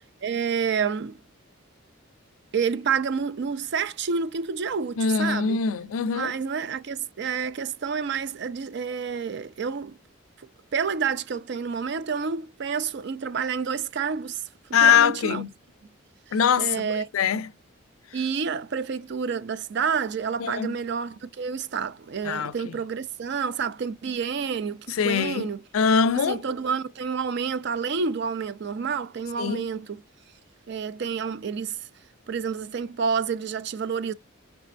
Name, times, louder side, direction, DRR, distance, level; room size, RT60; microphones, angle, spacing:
voice 1, 0.2-1.2 2.5-5.6 6.1-10.0 10.4-14.4 14.8-15.4 16.6-17.3 18.1-25.6 26.3-30.0 30.7-31.9 32.3-34.1, right 6 dB, 55° right, 0.4 m, -29 dB
voice 2, 5.0-6.3 14.7-15.5 16.3-16.9 17.1-17.5 20.4-20.8 22.2-22.7 24.9-26.4 29.4-29.7, left 7 dB, 85° left, 0.4 m, -23 dB
4.5 x 4.1 x 2.5 m
head